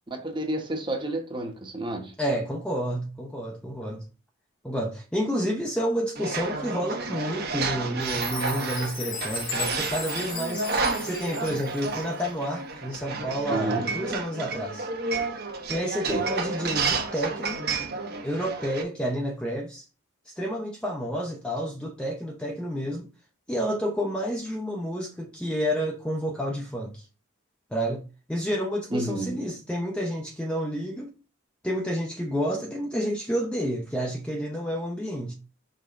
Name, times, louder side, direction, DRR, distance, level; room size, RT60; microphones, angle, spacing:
voice 1, 0.1-2.1 13.5-13.9 16.1-16.2 28.9-29.5, right 1 dB, 25° right, 1.2 m, -30 dB
voice 2, 2.2-4.0 4.6-14.9 15.7-17.6 18.2-19.8 20.3-23.1 23.5-27.1 27.7-28.0 28.3-31.1 31.6-35.3, equal, 5° left, 0.6 m, -30 dB
sound 1, 6.2-18.8, right 4 dB, 50° right, 1.1 m, -31 dB
Chime, 8.0-12.2, left 5 dB, 85° left, 2.2 m, -36 dB
5.5 x 3.6 x 5.2 m
head